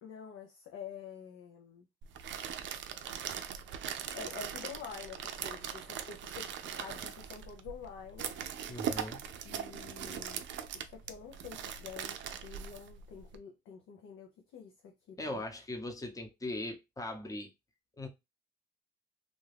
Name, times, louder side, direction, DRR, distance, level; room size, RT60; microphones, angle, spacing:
voice 1, 0.0-1.9 4.1-8.4 9.4-10.4 10.7-15.4, left 7 dB, 80° left, 0.6 m, -48 dB
sound 1, 2.0-13.4, right 8 dB, 70° right, 0.4 m, -40 dB
voice 2, 8.7-9.2 15.2-17.5 18.0-18.1, left 1 dB, 15° left, 0.8 m, -39 dB
2.5 x 2.3 x 3.2 m
cardioid pair, 90°, 20 cm